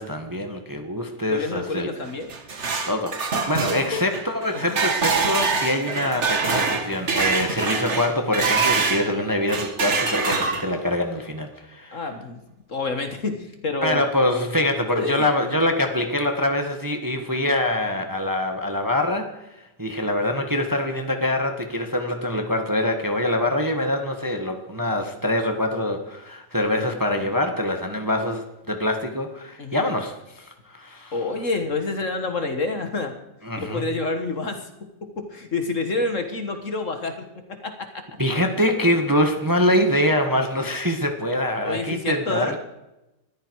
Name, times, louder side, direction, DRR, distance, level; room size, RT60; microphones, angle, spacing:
voice 1, 0.0-1.9 2.9-3.2 3.5-12.0 13.8-31.1 33.5-33.8 38.2-42.6, left 1 dB, 10° right, 5 dB, 1.4 m, -24 dB
voice 2, 1.3-2.3 3.9-4.0 4.5-4.8 11.9-12.4 12.7-14.0 14.9-15.3 29.6-29.9 31.1-33.2 33.6-38.2 41.6-42.6, left 3 dB, 45° left, 6 dB, 1.7 m, -28 dB
sound 1, 2.1-9.1 9.5-10.9, right 4 dB, 40° right, 1.7 m, -24 dB
21.0 x 14.0 x 4.7 m, 0.95 s
omnidirectional pair, 1.9 m